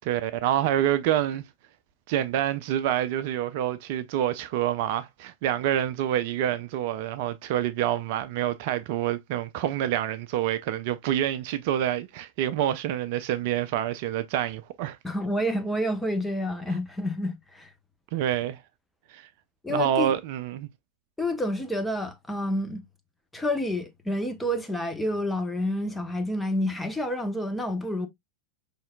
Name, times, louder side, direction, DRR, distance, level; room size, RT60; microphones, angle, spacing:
voice 1, 0.0-1.4 2.1-15.0 18.1-18.6 19.1-19.3 19.7-20.7, right 11 dB, 50° right, 0.4 m, -27 dB
voice 2, 15.0-17.7 19.6-20.1 21.2-22.8 23.3-28.1, left 1 dB, 5° left, 0.8 m, -29 dB
5.6 x 3.2 x 2.2 m
figure-of-eight pair, 90°, 0 cm